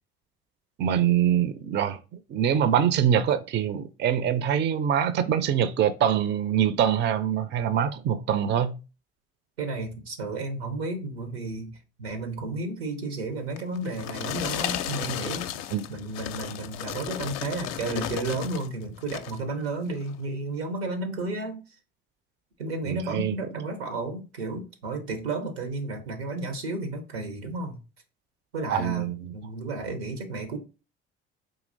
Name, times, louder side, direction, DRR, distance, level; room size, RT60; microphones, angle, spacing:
voice 1, 0.8-2.0 2.3-8.8 15.7-15.8 22.9-23.3 28.7-29.3, right 9 dB, 35° right, 0.4 m, -24 dB
voice 2, 9.6-15.5 15.9-21.6 22.6-27.8 28.5-30.6, right 2 dB, 90° right, 0.9 m, -32 dB
sound 1, 13.6-18.7 19.0-19.4 20.0-20.2, left 11 dB, 60° left, 0.4 m, -34 dB
3.8 x 2.9 x 2.6 m
hypercardioid pair, 55°, 30 cm